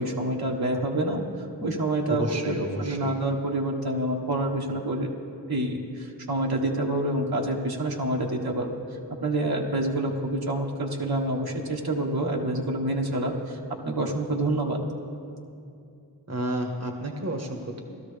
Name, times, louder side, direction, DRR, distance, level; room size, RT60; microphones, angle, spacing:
voice 1, 0.0-5.1 5.5-8.7 9.2-13.6 13.8-14.8, right 1 dB, 55° right, -1 dB, 1.5 m, -27 dB
voice 2, 2.1-3.2 16.3-17.8, right 1 dB, 35° right, 3 dB, 1.5 m, -31 dB
17.5 x 12.5 x 3.4 m, 2.6 s
cardioid pair, 45°, 43 cm